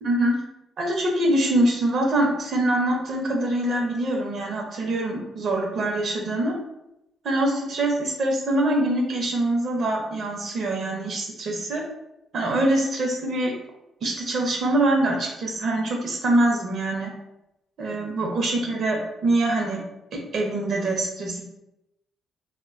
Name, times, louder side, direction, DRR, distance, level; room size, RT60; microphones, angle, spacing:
voice 1, 0.0-0.3 0.8-6.5 7.2-11.8 12.3-13.5 14.0-17.1 17.8-19.8 20.1-21.5, right 1 dB, 60° right, 1 dB, 0.6 m, -24 dB
2.4 x 2.1 x 2.4 m, 0.89 s
cardioid pair, 90°, 0 cm